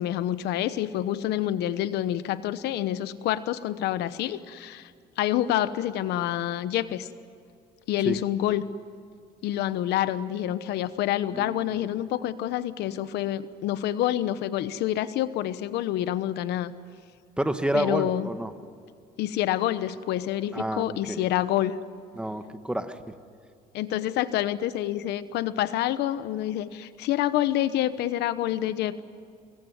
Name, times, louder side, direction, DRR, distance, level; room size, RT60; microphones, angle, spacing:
voice 1, 0.0-4.9 5.2-7.1 7.9-8.7 9.4-16.7 17.7-18.3 19.2-21.8 23.7-29.0, left 12 dB, 85° left, 14 dB, 1.0 m, -27 dB
voice 2, 11.3-11.8 17.4-18.5 20.5-21.3 22.2-23.1, right 1 dB, 5° right, 9 dB, 1.5 m, -29 dB
24.5 x 21.5 x 9.5 m, 2.2 s
cardioid pair, 110°, 17 cm